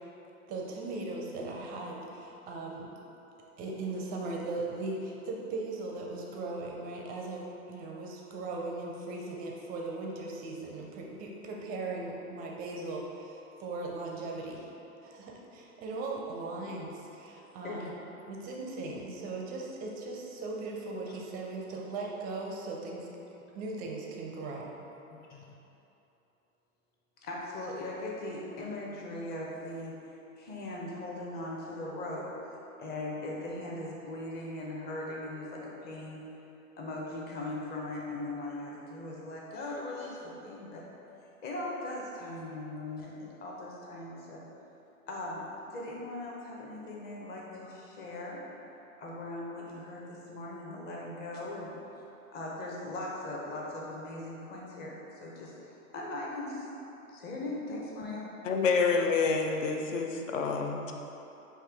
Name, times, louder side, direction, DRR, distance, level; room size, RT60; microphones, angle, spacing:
voice 1, 0.5-2.9 3.6-14.7 15.0-17.9 18.3-23.1 23.5-24.7, right 3 dB, 20° right, -1 dB, 0.5 m, -38 dB
voice 2, 25.1-25.5 27.2-29.9 30.4-32.2 32.8-36.2 36.8-40.8 41.4-44.4 45.1-45.4 45.7-48.4 49.0-51.7 52.3-55.0 55.2-56.7 57.1-58.3, left 2 dB, 20° left, -3 dB, 0.7 m, -39 dB
voice 3, 58.4-60.9, left 4 dB, 60° left, 3 dB, 0.6 m, -28 dB
5.7 x 2.7 x 3.4 m, 2.9 s
hypercardioid pair, 110°, 43 cm